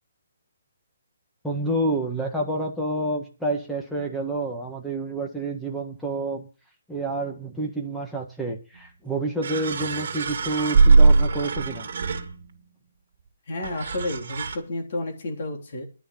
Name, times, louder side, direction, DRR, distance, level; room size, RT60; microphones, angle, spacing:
voice 1, 1.4-6.5 6.9-11.8, right 2 dB, ahead, 0 dB, 1.5 m, -28 dB
sound 1, 8.8-8.9 9.4-12.7 13.6-14.6, right 4 dB, 50° right, 2.6 m, -21 dB
voice 2, 13.5-15.9, left 2 dB, 45° left, 1 dB, 3.5 m, -31 dB
11.0 x 6.3 x 9.2 m, 0.33 s
hypercardioid pair, 170°, 0 cm